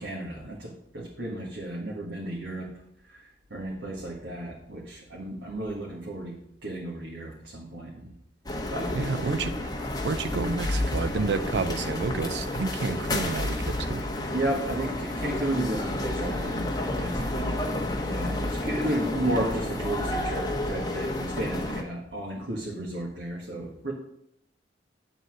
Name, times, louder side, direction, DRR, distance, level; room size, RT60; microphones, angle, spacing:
voice 1, 0.0-2.7 3.1-3.2 3.5-8.1 8.7-9.6 14.3-17.6 18.0-23.9, right 1 dB, 85° right, 1.6 m, -33 dB
sound 1, 8.5-21.8, left 1 dB, 20° left, 1.0 m, -30 dB
voice 2, 8.9-9.6 10.0-14.0, right 4 dB, 65° right, 0.4 m, -30 dB
9.4 x 4.0 x 6.2 m
head